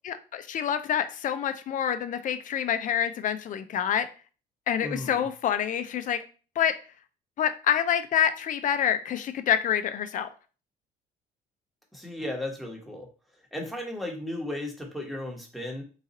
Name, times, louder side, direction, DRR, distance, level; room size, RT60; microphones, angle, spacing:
voice 1, 0.0-4.1 4.7-6.2 6.6-6.7 7.4-10.3, left 9 dB, 50° left, 10 dB, 0.5 m, -27 dB
voice 2, 4.8-5.2 11.9-13.1 13.5-15.8, left 1 dB, ahead, 1 dB, 1.2 m, -35 dB
3.9 x 2.5 x 4.1 m, 0.36 s
cardioid pair, 110°, 17 cm